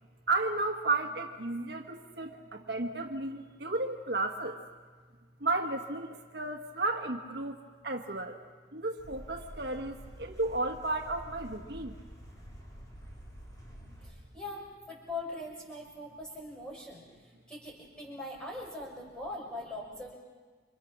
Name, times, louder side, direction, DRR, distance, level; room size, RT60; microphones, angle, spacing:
voice 1, 0.3-4.6 5.4-8.4 8.7-12.0, right 2 dB, 60° right, 4 dB, 1.3 m, -33 dB
sound 1, 9.0-14.1, equal, 20° left, 4.4 m, -48 dB
voice 2, 14.0-17.1 17.5-20.1, left 2 dB, 5° left, -3 dB, 5.9 m, -41 dB
28.5 x 25.0 x 6.0 m, 1.5 s
head